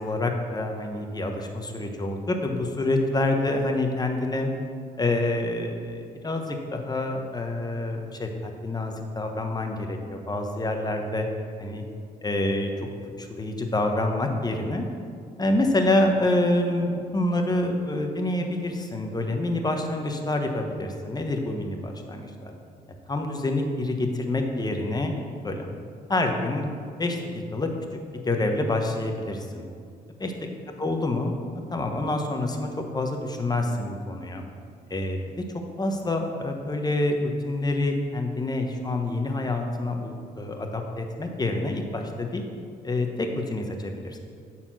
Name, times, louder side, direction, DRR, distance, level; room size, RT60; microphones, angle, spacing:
voice 1, 0.0-4.5 5.0-11.3 11.6-11.8 12.2-12.7 13.2-14.9 15.4-22.5 23.1-25.1 25.4-25.7 26.1-26.6 27.0-29.7 30.2-30.3 30.8-31.3 31.7-34.5 34.9-35.2 35.8-42.4 42.8-44.2, left 2 dB, 20° left, 3 dB, 1.1 m, -27 dB
8.8 x 4.4 x 6.1 m, 2.2 s
supercardioid pair, 70°, 18 cm